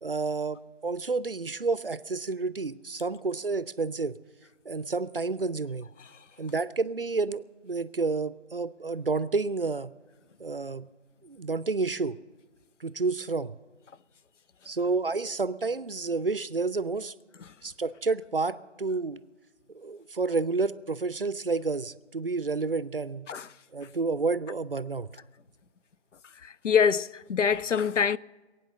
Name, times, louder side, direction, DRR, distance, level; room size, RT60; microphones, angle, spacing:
voice 1, 0.0-4.2 4.7-5.9 6.4-9.9 10.4-10.9 11.2-12.2 12.8-13.6 14.7-17.1 17.6-19.2 19.7-23.3 23.7-25.1, right 3 dB, 50° right, 0.5 m, -30 dB
voice 2, 26.4-28.2, left 7 dB, 90° left, 0.6 m, -25 dB
22.0 x 9.0 x 6.5 m
figure-of-eight pair, 170°, 36 cm